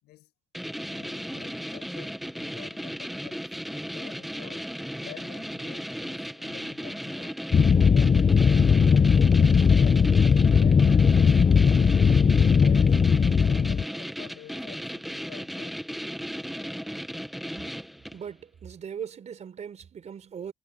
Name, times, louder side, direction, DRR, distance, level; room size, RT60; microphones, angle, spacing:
voice 1, 0.0-0.3 0.8-4.7 5.0-7.4 7.9-10.1 10.4-12.0 12.6-15.8, left 16 dB, 80° left, 7.2 m, -48 dB
sound 1, 0.5-18.3, equal, ahead, 1.1 m, -36 dB
sound 2, 7.5-13.8, left 6 dB, 25° left, 0.7 m, -19 dB
voice 2, 18.1-20.5, right 7 dB, 45° right, 3.9 m, -39 dB
cardioid pair, 110°, 17 cm